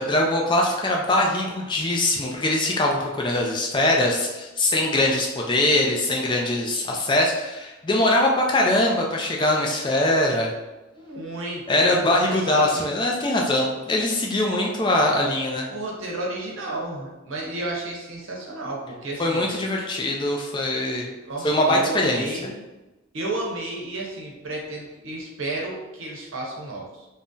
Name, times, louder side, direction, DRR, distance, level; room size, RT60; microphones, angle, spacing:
voice 1, 0.0-10.5 11.7-15.7 19.2-21.1 21.4-22.2, left 1 dB, 20° left, -1 dB, 0.3 m, -22 dB
voice 2, 4.8-5.3 10.9-12.8 15.7-19.5 21.2-22.6 23.1-27.1, right 2 dB, 70° right, -2 dB, 0.7 m, -32 dB
2.6 x 2.1 x 3.6 m, 1.1 s
head